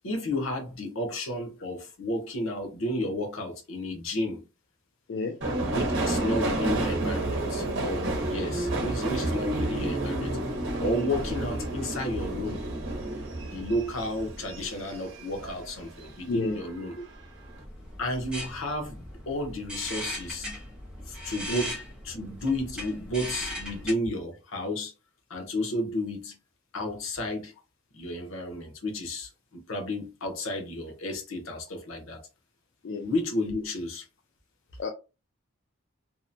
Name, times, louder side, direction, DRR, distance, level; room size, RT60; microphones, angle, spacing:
voice 1, 0.0-4.4 5.7-10.4 10.8-12.7 13.4-17.0 18.0-20.5 21.1-21.8 22.0-24.9 25.3-26.4 26.7-27.5 27.9-32.2 33.0-34.1, left 1 dB, 80° left, 0.8 m, -32 dB
Subway metro underground, 5.4-16.1 16.5-17.2 17.5-17.6, right 1 dB, 60° right, 0.8 m, -30 dB
voice 2, 16.3-16.6 21.5-21.7 32.8-33.1 34.8-34.9, left 3 dB, 55° left, 0.3 m, -31 dB
sound 1, 17.1-23.9, equal, 5° right, 0.9 m, -39 dB
2.7 x 2.1 x 2.5 m
head